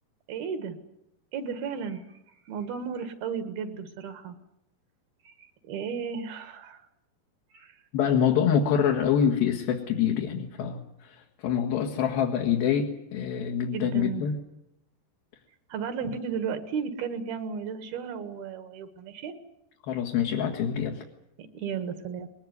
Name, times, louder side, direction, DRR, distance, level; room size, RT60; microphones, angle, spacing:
voice 1, 0.3-0.8 1.3-2.2 2.5-4.4 5.2-6.8 7.5-7.8 13.7-14.3 15.7-19.3 21.4-22.3, right 6 dB, 70° right, 9 dB, 3.5 m, -34 dB
voice 2, 7.9-14.4 19.9-21.0, left 8 dB, 65° left, 1 dB, 3.4 m, -26 dB
21.5 x 20.0 x 9.6 m, 0.82 s
omnidirectional pair, 4.7 m